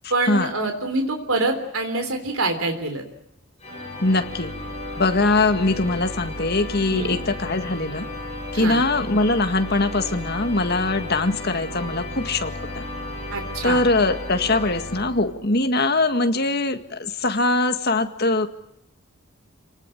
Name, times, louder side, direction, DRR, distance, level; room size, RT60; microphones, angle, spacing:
voice 1, 0.1-3.0 6.9-7.2 8.5-8.9 13.3-13.9, right 2 dB, 75° right, 5 dB, 3.5 m, -25 dB
sound 1, 3.6-15.6, left 1 dB, 30° left, 7.3 m, -34 dB
voice 2, 4.0-4.5 5.0-8.1 8.5-12.8 13.6-18.5, left 2 dB, 45° left, 7 dB, 1.9 m, -22 dB
28.0 x 18.5 x 9.1 m, 0.82 s
head